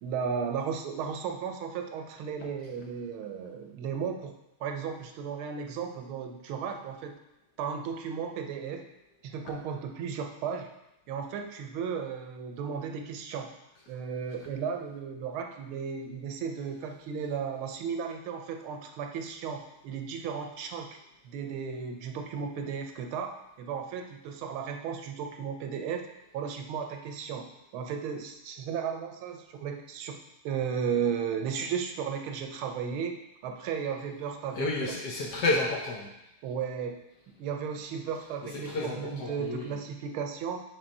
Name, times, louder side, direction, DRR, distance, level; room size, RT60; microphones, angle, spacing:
voice 1, 0.0-4.3 4.6-7.1 7.6-8.8 9.2-10.7 11.1-13.5 13.9-20.9 21.2-26.0 26.3-30.1 30.4-33.2 33.4-35.0 36.4-37.0 37.4-40.6, right 6 dB, 75° right, 4 dB, 1.5 m, -35 dB
voice 2, 34.6-36.1 38.7-39.7, left 2 dB, 65° left, -1 dB, 1.1 m, -30 dB
6.1 x 3.9 x 5.2 m, 0.90 s
omnidirectional pair, 2.4 m